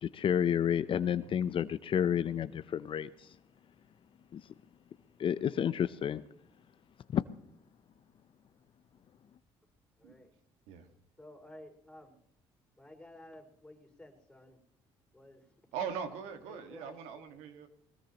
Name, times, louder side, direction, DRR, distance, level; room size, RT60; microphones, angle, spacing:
voice 1, 0.0-3.3 4.3-4.4 5.2-6.2 7.1-7.2, left 9 dB, 50° left, 13 dB, 0.6 m, -30 dB
voice 2, 10.0-10.3 11.2-12.1 12.8-14.6 15.1-15.5 16.5-17.0, left 1 dB, 5° left, 1 dB, 5.4 m, -53 dB
voice 3, 15.7-17.7, right 7 dB, 90° right, 7 dB, 1.7 m, -40 dB
20.5 x 20.0 x 3.0 m, 0.71 s
supercardioid pair, 75°, 11 cm